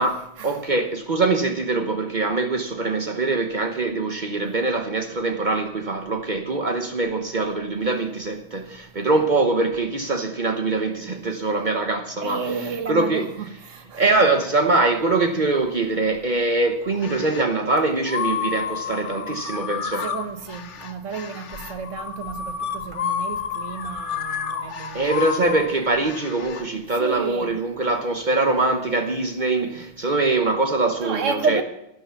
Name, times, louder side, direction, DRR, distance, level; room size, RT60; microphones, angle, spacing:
voice 1, 0.0-13.3 13.9-20.1 24.9-31.6, right 3 dB, 70° right, 0.4 m, -23 dB
voice 2, 12.2-14.0 20.0-25.2 27.0-27.5 31.0-31.6, right 5 dB, 45° right, 1.2 m, -31 dB
sound 1, 16.9-17.5 18.1-26.7, left 7 dB, 45° left, 1.0 m, -30 dB
12.0 x 11.5 x 5.7 m
omnidirectional pair, 2.3 m